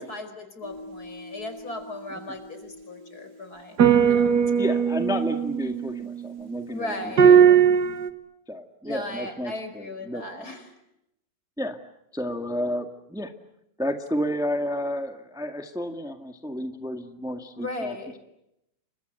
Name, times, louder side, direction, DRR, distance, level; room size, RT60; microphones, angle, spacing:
voice 1, 0.0-3.8 4.1-4.6 6.7-7.6 8.8-10.7 17.6-18.2, left 2 dB, 60° left, 8 dB, 5.6 m, -37 dB
sound 1, 3.8-6.5 7.2-8.1, right 8 dB, 65° right, 2.1 m, -19 dB
voice 2, 4.6-7.6 8.5-10.5 11.6-11.8 12.1-13.3 13.8-18.2, equal, ahead, 5 dB, 1.7 m, -31 dB
30.0 x 25.0 x 8.0 m, 0.83 s
omnidirectional pair, 1.9 m